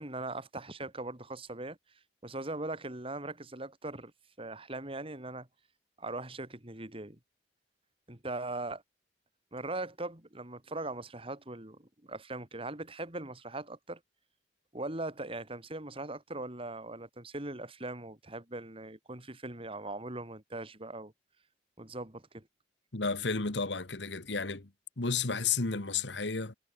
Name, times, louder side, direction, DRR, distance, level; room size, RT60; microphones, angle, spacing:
voice 1, 0.0-1.8 2.2-4.1 4.4-5.5 6.0-7.2 8.1-8.8 9.5-14.0 14.7-21.1 21.8-22.5, right 2 dB, 30° right, 3.2 m, -40 dB
voice 2, 22.9-24.7 25.0-26.5, left 4 dB, 90° left, 1.8 m, -32 dB
head